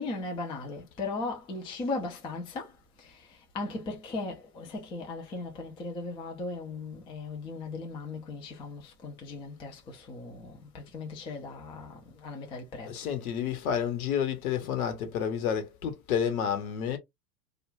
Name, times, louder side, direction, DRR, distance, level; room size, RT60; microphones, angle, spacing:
voice 1, 0.0-2.7 3.5-9.8 10.1-11.9 12.2-12.9, left 3 dB, 10° left, 0.4 m, -37 dB
voice 2, 12.8-17.0, left 8 dB, 65° left, 1.1 m, -30 dB
2.4 x 2.2 x 3.0 m
hypercardioid pair, 105°, 47 cm